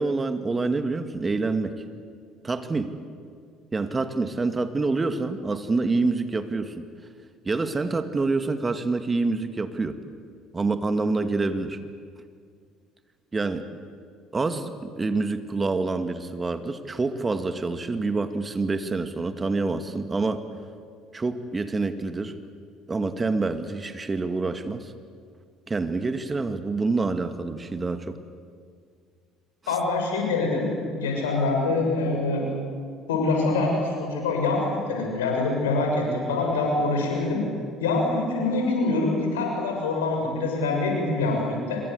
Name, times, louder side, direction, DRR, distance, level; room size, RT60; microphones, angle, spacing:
voice 1, 0.0-1.7 2.4-3.0 3.7-6.9 7.5-10.0 10.5-11.8 13.3-13.7 14.3-20.5 21.1-22.3 22.9-24.9 25.7-28.2, right 3 dB, 25° right, 9 dB, 2.1 m, -27 dB
voice 2, 29.7-30.6 30.9-32.4 33.1-37.4 37.8-41.8, left 3 dB, 80° left, 0 dB, 6.9 m, -25 dB
26.5 x 23.5 x 8.3 m, 2.1 s
hypercardioid pair, 60°, 0 cm